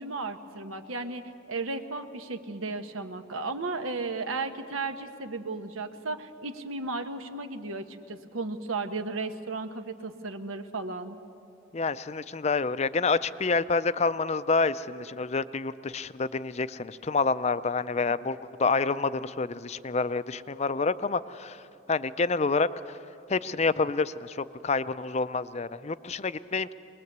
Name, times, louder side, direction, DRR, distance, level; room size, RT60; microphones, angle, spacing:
voice 1, 0.0-11.2, right 3 dB, 85° right, 7 dB, 1.2 m, -35 dB
voice 2, 11.7-21.6 21.9-23.0 23.3-26.7, left 4 dB, 30° left, 14 dB, 0.4 m, -28 dB
22.5 x 20.5 x 8.1 m, 2.7 s
head